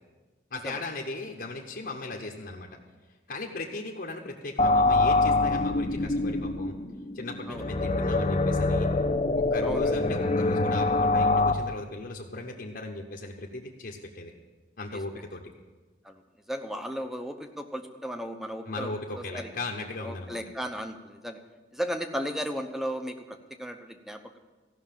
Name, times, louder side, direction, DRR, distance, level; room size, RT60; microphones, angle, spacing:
voice 1, 0.5-2.7 3.3-6.8 7.1-8.9 9.3-14.3 14.8-15.4 18.7-20.4, left 2 dB, 55° left, -1 dB, 0.9 m, -37 dB
sound 1, 4.6-11.5, left 2 dB, 35° left, 0.6 m, -25 dB
voice 2, 9.6-9.9 16.0-16.2 16.5-19.5 20.0-21.4 21.7-24.4, equal, ahead, 6 dB, 0.7 m, -35 dB
15.0 x 6.0 x 7.4 m, 1.3 s
head